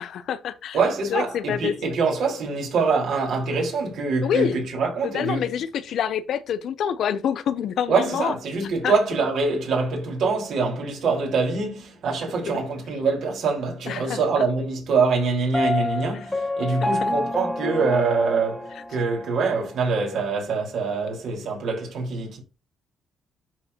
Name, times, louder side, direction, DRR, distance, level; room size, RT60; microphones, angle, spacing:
voice 1, 0.0-0.8 1.1-1.9 4.2-4.6 5.1-8.3 8.8-8.9 13.9-14.4 16.8-17.1, left 9 dB, 70° left, 0.7 m, -27 dB
voice 2, 0.7-5.5 7.9-22.4, right 4 dB, 70° right, 4.5 m, -24 dB
Piano, 15.5-19.4, left 2 dB, 15° left, 1.3 m, -28 dB
11.0 x 4.9 x 2.9 m
cardioid pair, 90°, 0 cm